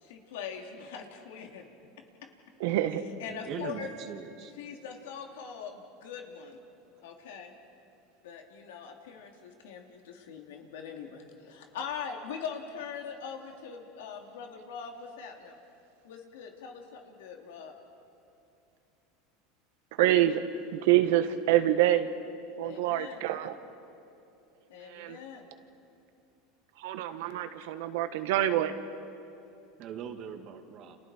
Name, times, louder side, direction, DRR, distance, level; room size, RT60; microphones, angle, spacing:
voice 1, 0.0-1.6 3.2-3.9 4.6-6.6 7.0-7.5 8.2-15.6 16.0-17.7 22.6-23.2 24.7-25.5, left 7 dB, 85° left, 2 dB, 2.9 m, -42 dB
voice 2, 2.6-3.0 20.0-20.4 20.7-22.1 22.6-23.5 24.9-25.2 26.8-28.7, right 13 dB, 75° right, 9 dB, 1.4 m, -26 dB
voice 3, 3.2-4.5 29.8-31.0, right 7 dB, 50° right, 5 dB, 2.2 m, -41 dB
30.0 x 28.5 x 4.5 m, 2.8 s
supercardioid pair, 120°, 0 cm